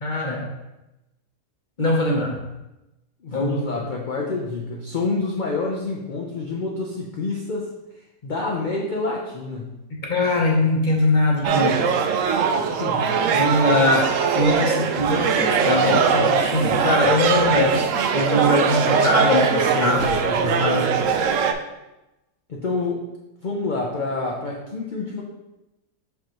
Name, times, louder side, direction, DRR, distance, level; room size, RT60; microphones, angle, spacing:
voice 1, 0.0-0.5 1.8-2.4 3.3-3.6 10.0-11.8 13.3-17.9 18.1-20.9, left 2 dB, 35° left, -1 dB, 0.9 m, -21 dB
voice 2, 3.2-7.7 8.2-9.7 12.6-13.2 22.5-23.0 23.4-25.2, left 3 dB, 55° left, -2 dB, 0.5 m, -27 dB
sound 1, 11.4-21.5, right 6 dB, 70° right, 0.8 m, -21 dB
6.2 x 5.5 x 3.0 m, 0.97 s
omnidirectional pair, 1.7 m